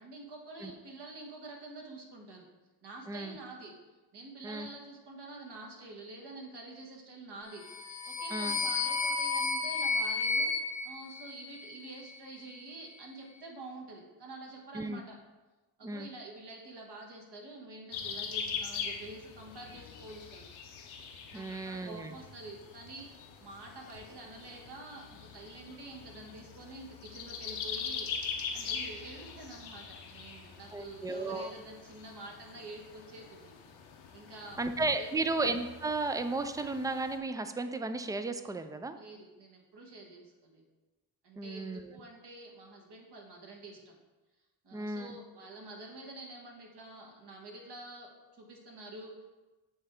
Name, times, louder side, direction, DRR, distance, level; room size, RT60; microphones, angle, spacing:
voice 1, 0.0-2.5 2.8-3.7 4.1-15.2 15.8-20.4 21.3-28.1 28.5-33.5 34.1-34.6 35.0-35.3 39.0-40.6 41.2-44.0 44.6-49.2, right 2 dB, 60° right, 0 dB, 1.6 m, -48 dB
sound 1, 7.6-11.9, left 4 dB, 40° left, 0.5 m, -32 dB
sound 2, 17.9-37.2, left 6 dB, 85° left, 0.8 m, -43 dB
voice 2, 21.3-22.1 30.7-31.5 34.6-39.0 41.4-41.9 44.7-45.2, right 3 dB, 10° right, 10 dB, 0.3 m, -34 dB
8.0 x 3.3 x 3.7 m, 1.2 s
supercardioid pair, 60°, 47 cm